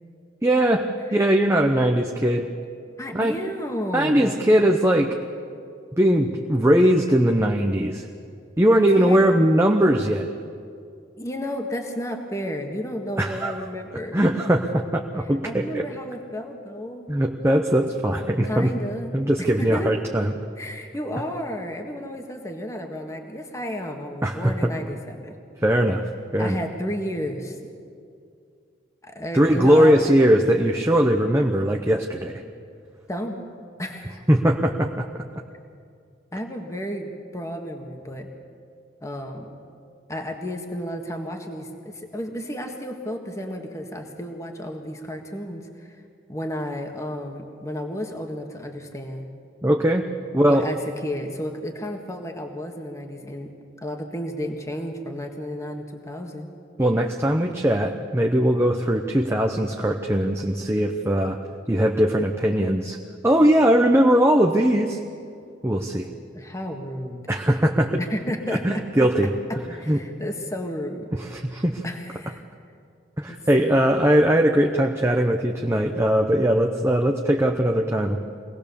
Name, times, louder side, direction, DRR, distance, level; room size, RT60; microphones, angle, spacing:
voice 1, 0.4-2.5 3.1-3.3 3.9-5.1 6.0-8.1 8.6-10.3 13.2-13.5 14.1-15.9 17.1-18.7 19.1-20.3 24.2-24.7 25.6-26.0 26.3-26.6 29.3-32.4 34.3-35.1 49.6-50.1 50.3-50.7 56.8-61.4 61.7-63.0 63.2-65.0 65.6-66.1 67.3-68.0 68.6-69.3 69.9-70.0 71.1-71.8 73.2-78.2, equal, 15° right, 2 dB, 0.8 m, -20 dB
voice 2, 3.0-4.4 8.9-9.2 11.2-14.2 15.4-17.1 18.4-19.1 19.6-19.9 20.6-25.4 26.4-27.6 29.0-30.0 33.1-33.4 33.8-34.2 36.3-38.3 39.0-39.5 40.1-45.9 46.3-49.3 50.5-53.5 53.8-56.5 66.3-67.2 68.0-68.8 69.5-71.1 71.8-72.4 73.3-74.0, equal, 15° left, 3 dB, 1.6 m, -32 dB
24.5 x 18.5 x 7.0 m, 2.3 s
head